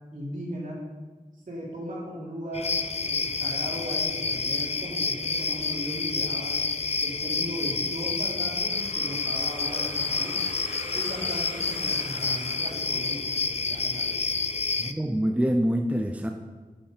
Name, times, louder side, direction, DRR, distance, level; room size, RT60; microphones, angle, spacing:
voice 1, 0.1-0.8 1.5-6.6 7.0-10.4 10.9-14.2, equal, 60° right, -4 dB, 3.2 m, -37 dB
sound 1, 2.5-14.9, left 4 dB, 45° left, 0.5 m, -29 dB
sound 2, 8.7-13.6, left 2 dB, 70° left, 2.4 m, -43 dB
voice 2, 14.8-16.3, equal, 10° right, 4 dB, 0.6 m, -25 dB
8.2 x 6.1 x 6.6 m, 1.3 s
wide cardioid pair, 75°, 15 cm